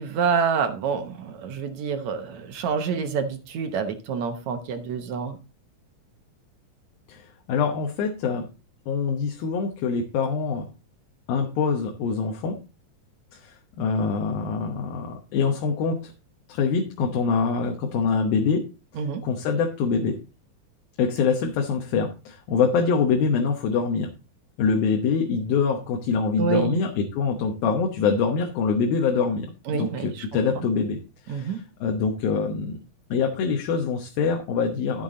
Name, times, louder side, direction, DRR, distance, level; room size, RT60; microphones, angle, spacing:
voice 1, 0.0-5.4 19.0-19.2 26.4-26.8 29.7-30.3 30.6-30.7 31.3-31.6, right 6 dB, 65° right, 2.0 m, -27 dB
voice 2, 7.1-8.5 8.9-10.6 11.3-12.6 13.3-16.1 16.5-18.6 18.9-20.2 21.0-24.1 24.6-29.5 29.7-31.0 31.3-32.8 33.1-35.0, left 5 dB, 85° left, 3.0 m, -24 dB
12.5 x 7.0 x 3.9 m
omnidirectional pair, 4.1 m